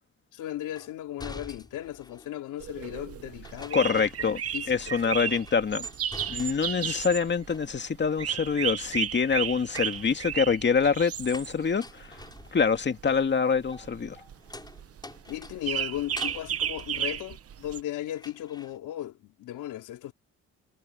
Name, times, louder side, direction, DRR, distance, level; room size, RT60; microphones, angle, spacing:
voice 1, 0.3-5.4 15.3-20.1, left 13 dB, 90° left, 3.7 m, -37 dB
sound 1, 0.8-2.4 3.4-4.7 5.0-6.9 7.2-8.1 9.5-17.8 18.2-18.8, left 2 dB, 15° left, 7.4 m, -47 dB
sound 2, 2.6-17.8, right 9 dB, 50° right, 1.0 m, -34 dB
voice 2, 3.7-4.4 4.7-5.9 6.3-12.2 12.5-14.2, left 5 dB, 35° left, 2.2 m, -25 dB
cardioid pair, 90°, 30 cm